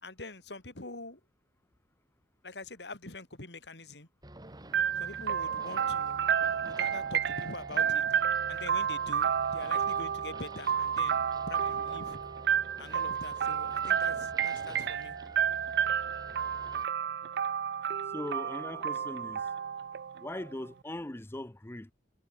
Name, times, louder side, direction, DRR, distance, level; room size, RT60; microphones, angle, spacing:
voice 1, 0.0-1.2 2.4-4.1 5.0-8.0 8.5-12.2 12.8-15.2, left 2 dB, 75° left, 4.0 m, -44 dB
sound 1, 4.2-16.9, right 1 dB, 25° right, 2.7 m, -49 dB
sound 2, 4.7-20.5, right 8 dB, 70° right, 0.4 m, -31 dB
voice 2, 18.1-19.5 20.2-21.9, left 1 dB, 15° left, 0.7 m, -40 dB
head